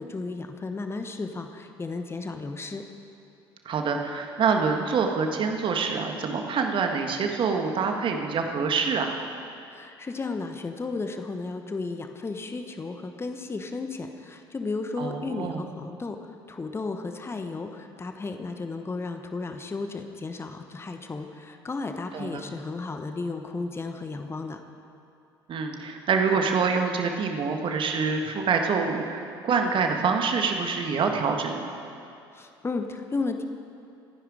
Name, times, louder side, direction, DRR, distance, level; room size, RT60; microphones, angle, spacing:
voice 1, 0.0-2.8 9.7-16.2 16.5-24.6 32.3-33.4, left 3 dB, 20° left, 6 dB, 1.2 m, -34 dB
voice 2, 3.7-9.2 15.0-15.6 22.1-22.4 25.5-31.7, right 5 dB, 40° right, 4 dB, 1.8 m, -26 dB
26.5 x 9.9 x 5.0 m, 2.7 s
figure-of-eight pair, 60°, 13 cm